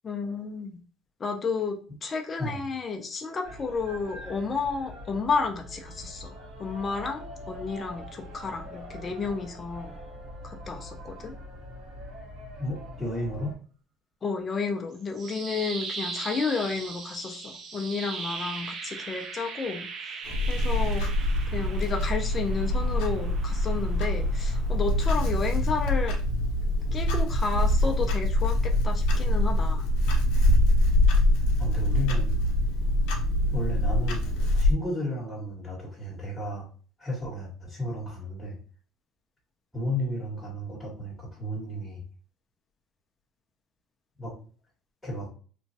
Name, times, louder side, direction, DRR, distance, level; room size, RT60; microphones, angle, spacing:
voice 1, 0.0-0.8 1.2-6.3 6.6-10.0 10.4-11.4 14.2-21.1 21.5-26.2 26.9-29.9, left 4 dB, 25° left, 2 dB, 0.4 m, -32 dB
sound 1, 3.4-13.6, equal, 70° right, 1.2 m, -43 dB
voice 2, 12.6-13.6 31.6-32.3 33.5-34.2 34.6-36.7 37.0-38.5 39.7-42.0 44.2-44.3 45.0-45.3, left 1 dB, 5° left, -8 dB, 1.1 m, -33 dB
sound 2, 14.9-25.0, right 4 dB, 40° right, 0.4 m, -39 dB
Clock, 20.3-34.7, left 1 dB, 80° left, 0.6 m, -24 dB
3.0 x 2.2 x 2.6 m, 0.40 s
cardioid pair, 150°, 0 cm